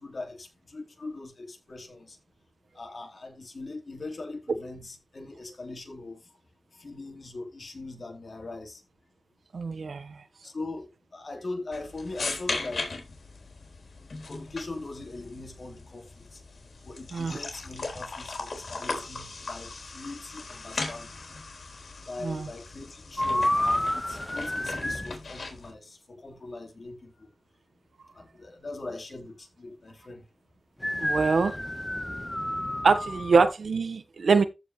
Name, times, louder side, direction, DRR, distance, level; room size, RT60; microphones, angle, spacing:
voice 1, 0.0-2.2 2.7-6.2 6.7-8.8 10.4-10.9 11.1-12.9 14.3-16.4 16.8-21.1 22.1-27.3 28.1-30.2, left 2 dB, 55° left, 3.4 m, -41 dB
voice 2, 9.5-10.2 17.1-17.4 22.2-22.5 31.0-31.6 32.8-34.4, right 4 dB, 90° right, 1.2 m, -24 dB
sound 1, 11.7-25.7, left 3 dB, 80° left, 3.9 m, -38 dB
sound 2, 23.2-25.2 30.8-33.5, left 1 dB, 15° left, 1.3 m, -29 dB
14.5 x 5.1 x 3.2 m
wide cardioid pair, 85°, 0 cm